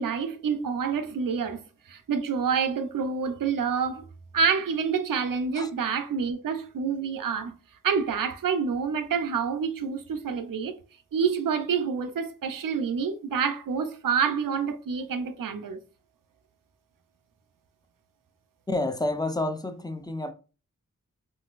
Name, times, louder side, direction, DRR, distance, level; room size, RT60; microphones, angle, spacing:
voice 1, 0.0-1.6 1.9-4.1 4.3-7.5 7.8-10.8 11.1-15.8, right 6 dB, 90° right, 0.5 m, -27 dB
voice 2, 18.7-20.3, left 2 dB, 15° left, 0.4 m, -29 dB
3.8 x 2.3 x 2.4 m
cardioid pair, 45°, 32 cm